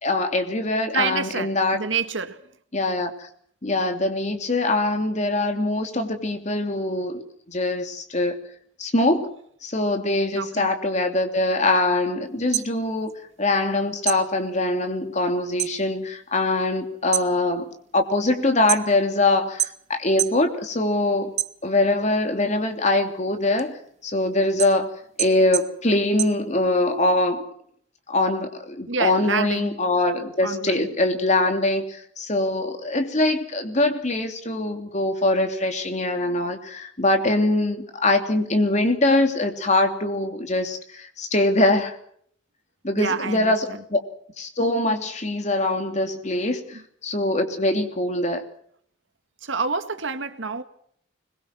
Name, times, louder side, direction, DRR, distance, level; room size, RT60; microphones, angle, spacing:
voice 1, 0.0-1.8 2.7-3.3 3.6-7.2 7.5-8.4 8.8-9.3 9.6-13.1 13.4-17.6 17.9-21.3 21.6-23.8 24.0-24.9 25.2-27.5 28.1-42.0 42.8-44.0 44.4-48.4, left 2 dB, 35° left, 2.9 m, -23 dB
voice 2, 0.9-2.4 10.3-10.7 28.9-29.8 30.4-30.9 43.0-43.8 46.7-46.8 49.4-50.6, right 5 dB, 75° right, 1.8 m, -28 dB
sound 1, 12.3-13.7 14.0-15.8 16.1-16.6 17.0-19.2 19.6-20.4 20.8-22.0 22.5-27.0, right 12 dB, 35° right, 0.8 m, -29 dB
25.5 x 21.5 x 6.1 m
head